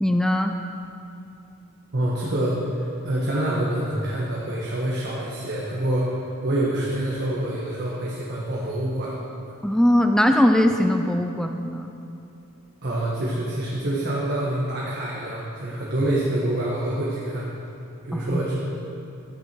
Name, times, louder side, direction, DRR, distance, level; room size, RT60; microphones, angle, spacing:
voice 1, 0.0-0.5 9.6-11.9 18.1-18.4, left 1 dB, 5° left, 5 dB, 0.3 m, -20 dB
voice 2, 1.9-9.1 12.8-17.5 18.0-18.5, right 1 dB, 50° right, -5 dB, 1.4 m, -26 dB
13.0 x 9.2 x 4.5 m, 2.7 s
head